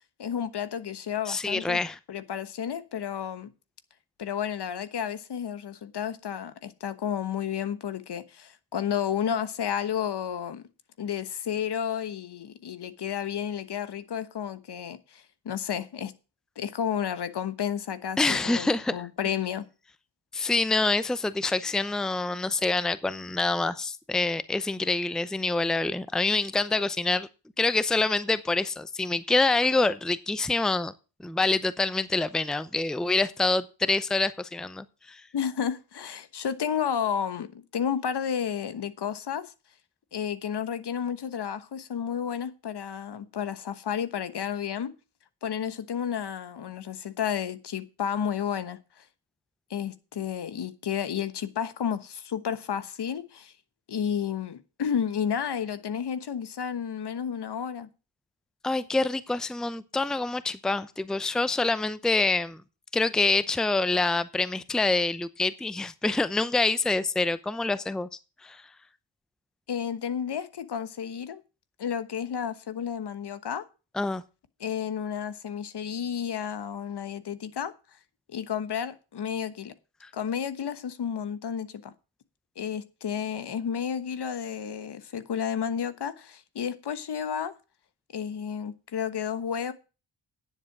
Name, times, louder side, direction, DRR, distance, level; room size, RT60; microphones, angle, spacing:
voice 1, 0.2-1.8 2.1-3.5 4.2-10.6 11.0-16.1 16.6-19.6 35.3-39.5 40.1-44.9 45.4-49.0 49.7-53.5 53.9-57.9 69.7-71.4 71.8-73.7 74.6-77.7 78.3-79.7 80.1-81.9 82.6-87.5 88.1-89.7, left 8 dB, 60° left, 1.2 m, -31 dB
voice 2, 1.3-2.0 18.2-18.9 20.3-27.3 27.6-30.9 31.2-35.2 58.6-62.6 62.9-68.1 68.4-68.7 73.9-74.2 80.0-80.1, left 3 dB, ahead, 0.6 m, -26 dB
10.0 x 7.6 x 6.0 m
cardioid pair, 70°, 44 cm